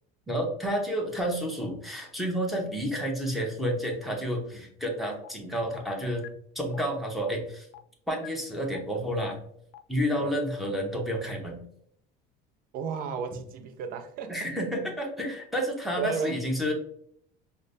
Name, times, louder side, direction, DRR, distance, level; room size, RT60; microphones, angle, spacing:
voice 1, 0.3-6.3 6.5-7.7 8.1-9.4 9.9-11.6 14.3-16.7, equal, ahead, 0.8 m, -30 dB
sound 1, 5.2-5.3 5.7-5.8 6.2-6.3 6.7-6.8 7.2-7.3 7.7-7.8 8.2-8.3 8.7-8.8 9.2-9.3 9.7-9.8, left 16 dB, 70° left, 0.4 m, -44 dB
voice 2, 12.7-14.4 16.0-16.4, right 6 dB, 45° right, 0.5 m, -33 dB
5.1 x 2.1 x 2.5 m
cardioid pair, 145°, 21 cm